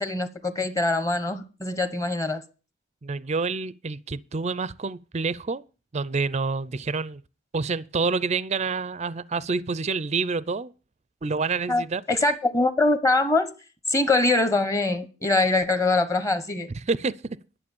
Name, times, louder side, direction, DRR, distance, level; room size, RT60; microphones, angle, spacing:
voice 1, 0.0-2.4 11.7-11.8 12.1-13.5 13.9-16.7, left 2 dB, 15° left, 1.1 m, -23 dB
voice 2, 3.0-5.6 5.9-7.2 7.5-10.7 11.2-12.0 16.8-17.4, right 4 dB, 30° right, 0.5 m, -28 dB
11.5 x 6.9 x 7.1 m
head